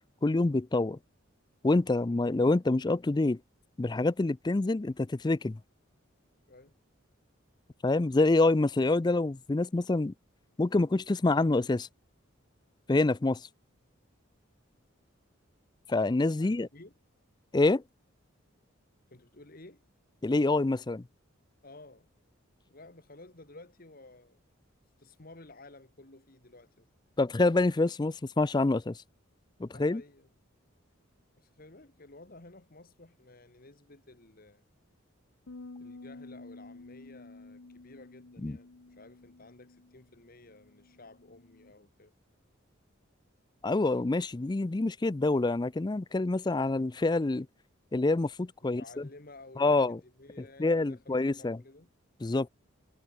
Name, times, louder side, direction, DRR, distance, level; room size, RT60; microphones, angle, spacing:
voice 1, 0.2-1.0 1.6-3.4 3.8-5.6 7.8-10.1 10.6-11.9 12.9-13.5 15.9-16.7 17.5-17.8 20.2-21.0 27.2-29.0 29.6-30.0 38.4-38.6 43.6-47.5 47.9-49.1 49.6-50.0 50.6-51.6 52.2-52.5, left 2 dB, 20° left, 0.4 m, -26 dB
voice 2, 6.5-6.8 16.4-16.9 19.1-19.8 21.6-22.1 22.7-24.4 25.0-26.9 29.7-30.3 31.4-34.6 35.8-42.1 48.6-51.9, left 2 dB, 45° left, 2.0 m, -53 dB
sound 1, 35.5-41.7, left 2 dB, 80° left, 1.0 m, -51 dB
head